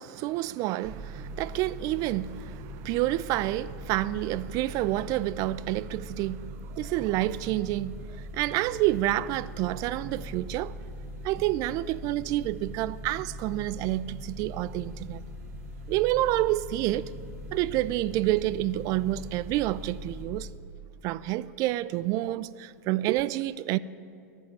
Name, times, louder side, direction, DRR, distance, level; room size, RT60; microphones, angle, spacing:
voice 1, 0.0-10.8 11.2-15.2 15.9-17.1 17.5-20.5 21.0-23.8, right 16 dB, 40° right, 0.3 m, -28 dB
sound 1, 0.8-20.2, equal, 75° right, 4.3 m, -41 dB
11.0 x 9.5 x 9.2 m
hypercardioid pair, 120°, 9 cm